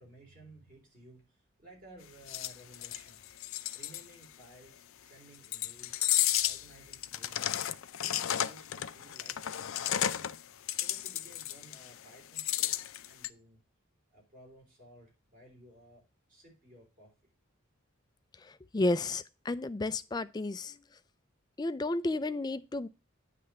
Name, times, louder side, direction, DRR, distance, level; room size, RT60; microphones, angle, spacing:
voice 1, 0.0-3.3 3.7-6.1 6.4-7.6 8.0-9.4 9.7-10.2 10.8-12.7 13.0-13.6 14.1-16.0 16.3-17.1, right 1 dB, 40° right, 3.5 m, -56 dB
sound 1, 2.3-4.0 5.4-6.6 6.9-10.4 10.7-11.9 12.3-13.3, left 12 dB, 80° left, 0.5 m, -32 dB
voice 2, 18.4-20.8 21.6-22.9, left 2 dB, 20° left, 0.3 m, -32 dB
9.5 x 3.4 x 6.5 m
head